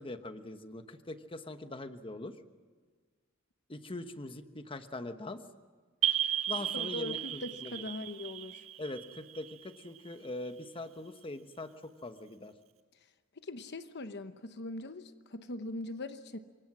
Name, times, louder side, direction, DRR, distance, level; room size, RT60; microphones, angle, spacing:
voice 1, 0.0-2.4 3.7-5.4 6.5-7.8 8.8-12.5, left 2 dB, 25° left, 8 dB, 1.2 m, -42 dB
sound 1, 6.0-10.5, right 11 dB, 80° right, 1.6 m, -35 dB
voice 2, 6.7-8.7 13.4-16.4, left 2 dB, 55° left, 9 dB, 1.0 m, -41 dB
27.5 x 24.0 x 6.2 m, 1.5 s
head